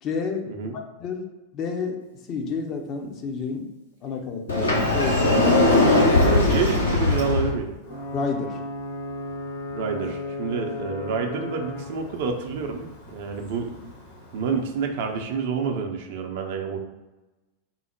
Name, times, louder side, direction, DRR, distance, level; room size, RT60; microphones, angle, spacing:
voice 1, 0.0-0.5 0.7-1.2 1.5-2.0 2.3-3.7 4.0-5.4 8.1-8.6 13.4-13.5, left 4 dB, 35° left, 3 dB, 0.6 m, -30 dB
Sliding door, 4.5-7.5, left 2 dB, 80° left, 0.9 m, -19 dB
voice 2, 6.2-7.7 9.7-13.7 14.3-16.8, right 5 dB, 50° right, 3 dB, 0.5 m, -28 dB
Ocean / Boat Water vehicle / Alarm, 7.8-15.4, left 2 dB, 60° left, 1.1 m, -36 dB
3.8 x 2.1 x 4.4 m, 1.1 s
figure-of-eight pair, 90°, 0 cm